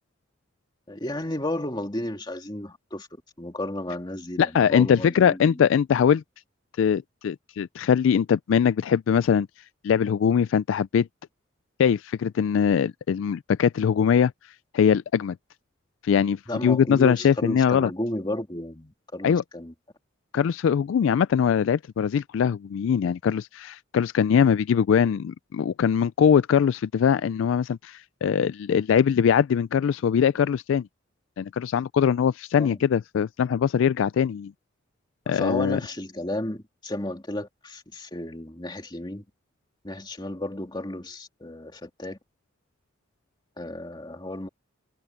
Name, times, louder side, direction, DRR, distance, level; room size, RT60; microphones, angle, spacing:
voice 1, 0.9-3.1 3.4-5.7 16.5-19.7 32.6-32.8 35.3-39.2 39.8-42.2 43.6-44.5, left 1 dB, 20° left, 2.5 m, -33 dB
voice 2, 4.4-6.2 6.8-9.5 9.8-11.1 11.8-14.3 14.7-15.4 16.0-17.9 19.2-19.4 20.3-30.9 31.4-34.5 35.3-35.8, left 7 dB, 70° left, 0.3 m, -22 dB
head